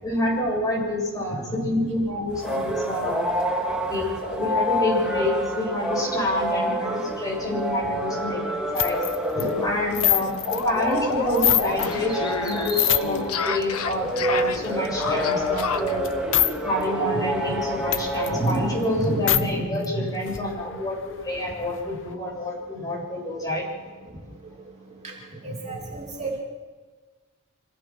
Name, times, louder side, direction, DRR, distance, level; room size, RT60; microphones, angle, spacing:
voice 1, 0.0-3.2 3.9-9.0 9.3-16.1 16.6-23.6 25.4-25.6, left 1 dB, 15° left, -2 dB, 7.7 m, -27 dB
sound 1, 2.3-19.3, equal, 5° right, 2.6 m, -28 dB
sound 2, 8.8-11.9 12.3-13.3 13.7-16.5 16.8-16.9 17.2-19.4 19.8-19.9 20.1-22.1, left 12 dB, 60° left, 1.0 m, -27 dB
sound 3, 9.0-9.1 9.4-9.5 9.9-16.0, left 5 dB, 80° left, 1.3 m, -30 dB
voice 2, 25.4-26.4, right 3 dB, 30° right, -2 dB, 2.6 m, -33 dB
26.5 x 17.5 x 6.3 m, 1.4 s
head